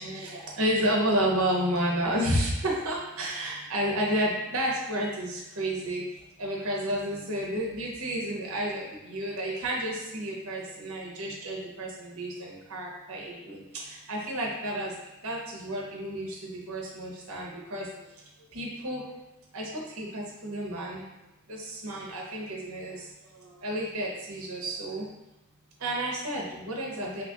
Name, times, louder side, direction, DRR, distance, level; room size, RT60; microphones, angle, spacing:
voice 1, 0.0-6.0 6.4-14.9 15.2-18.1 18.5-19.1 19.5-21.0 21.5-25.1 25.8-27.2, right 1 dB, 80° right, -3 dB, 0.8 m, -31 dB
2.9 x 2.4 x 3.9 m, 0.97 s
head